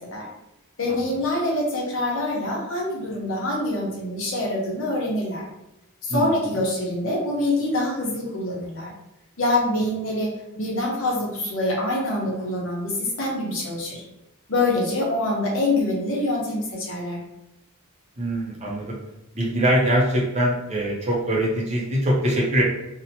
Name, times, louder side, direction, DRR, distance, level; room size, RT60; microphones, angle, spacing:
voice 1, 0.8-5.5 6.0-8.9 9.4-10.3 10.5-14.0 14.5-17.2, left 1 dB, 60° left, -3 dB, 0.8 m, -25 dB
voice 2, 18.2-19.0 19.3-22.6, right 1 dB, 30° right, -3 dB, 0.5 m, -23 dB
2.8 x 2.1 x 2.8 m, 0.90 s
head